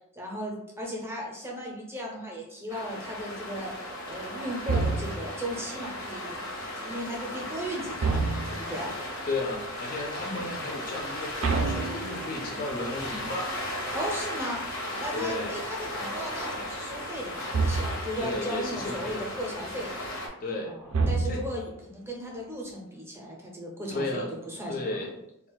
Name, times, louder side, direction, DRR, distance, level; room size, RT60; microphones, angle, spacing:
voice 1, 0.1-6.4 6.8-8.9 10.2-10.5 13.9-14.6 15.0-19.9 20.6-25.1, equal, 10° right, -2 dB, 0.6 m, -36 dB
sound 1, 2.7-20.3, left 1 dB, 90° left, 0.8 m, -36 dB
sound 2, 4.7-5.4 8.0-8.8 11.4-12.6 17.5-18.2 20.9-21.7, right 4 dB, 75° right, 0.4 m, -28 dB
voice 2, 9.3-13.6 15.1-15.6 18.2-19.3 20.4-20.7 21.3-21.4 23.9-24.3 24.7-25.1, left 2 dB, 40° left, 0 dB, 0.4 m, -33 dB
2.4 x 2.2 x 3.9 m, 0.82 s
head